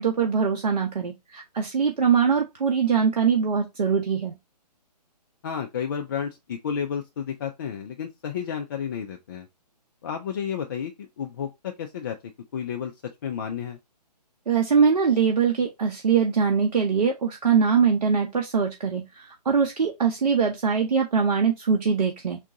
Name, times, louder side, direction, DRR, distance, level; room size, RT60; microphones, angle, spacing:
voice 1, 0.0-4.4 14.5-22.4, right 6 dB, 80° right, 0.8 m, -22 dB
voice 2, 5.4-9.5 10.0-12.2 12.5-12.9 13.2-13.8, left 7 dB, 30° left, 0.4 m, -31 dB
3.7 x 2.4 x 3.9 m
hypercardioid pair, 145°, 21 cm